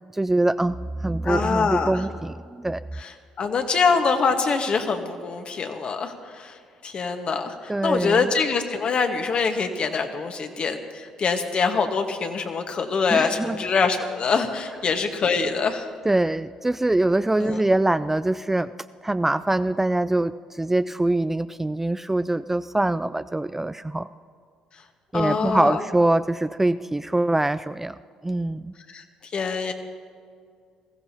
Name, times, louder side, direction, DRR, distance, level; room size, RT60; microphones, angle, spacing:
voice 1, 0.1-2.8 7.7-8.3 13.1-13.6 16.1-18.7 19.0-24.1 25.1-28.0 28.2-28.7, right 2 dB, 10° right, 12 dB, 0.3 m, -23 dB
voice 2, 1.2-1.9 3.0-6.6 6.8-15.9 17.4-17.6 25.1-25.8 28.9-29.0 29.3-29.7, left 5 dB, 50° left, 6 dB, 1.4 m, -24 dB
20.5 x 15.0 x 2.9 m, 2.1 s
hypercardioid pair, 55°, 2 cm